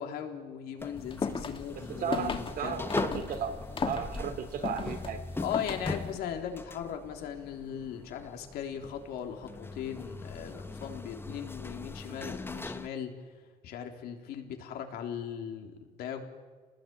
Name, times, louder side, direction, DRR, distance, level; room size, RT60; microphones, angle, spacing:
voice 1, 0.0-2.9 5.4-13.1 13.6-16.2, left 8 dB, 85° left, 4 dB, 3.6 m, -38 dB
sound 1, 0.8-12.9, left 2 dB, 15° left, 1.3 m, -41 dB
sound 2, 1.0-6.2, left 5 dB, 35° left, 2.6 m, -36 dB
voice 2, 1.9-3.6 3.8-5.2, right 7 dB, 65° right, 7 dB, 3.9 m, -34 dB
27.5 x 19.5 x 9.1 m, 1.5 s
cardioid pair, 100°, 16 cm